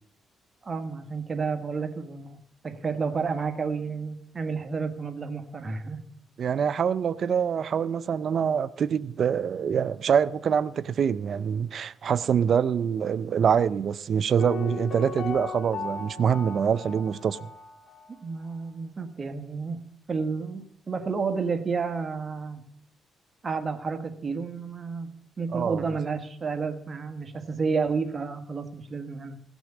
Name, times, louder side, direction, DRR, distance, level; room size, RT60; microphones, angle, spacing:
voice 1, 0.6-6.0 18.2-22.6 23.4-29.4, right 5 dB, 35° right, 1.3 m, -31 dB
voice 2, 6.4-17.5 25.5-25.8, right 7 dB, 55° right, 0.4 m, -25 dB
Piano, 14.4-18.2 18.4-18.5, left 5 dB, 55° left, 1.6 m, -37 dB
17.0 x 6.2 x 8.2 m
cardioid pair, 90°, 0 cm